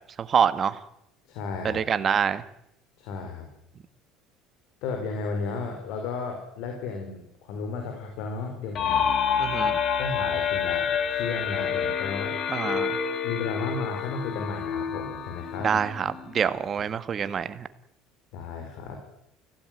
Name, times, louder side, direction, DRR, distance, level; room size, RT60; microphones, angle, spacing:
voice 1, 0.2-0.8 1.6-2.4 9.4-9.8 12.5-13.0 15.6-17.7, right 7 dB, 30° right, 13 dB, 1.5 m, -26 dB
voice 2, 1.3-1.8 3.0-3.5 4.8-9.1 10.0-12.5 13.2-15.8 18.3-19.0, left 4 dB, 70° left, 4 dB, 4.8 m, -34 dB
sound 1, 8.8-16.4, left 7 dB, 40° left, 2.2 m, -28 dB
23.5 x 17.0 x 9.5 m, 0.79 s
cardioid pair, 135°, 0 cm